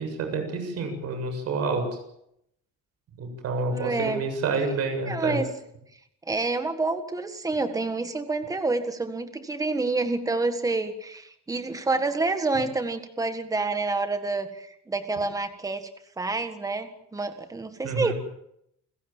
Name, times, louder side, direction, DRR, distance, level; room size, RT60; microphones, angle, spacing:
voice 1, 0.0-1.8 3.2-5.4 17.8-18.1, right 4 dB, 55° right, 6 dB, 7.6 m, -28 dB
voice 2, 3.7-4.2 5.1-5.5 6.3-15.9 16.2-18.1, right 3 dB, 10° right, 8 dB, 1.7 m, -28 dB
30.0 x 16.0 x 7.4 m, 0.77 s
cardioid pair, 175°, 30 cm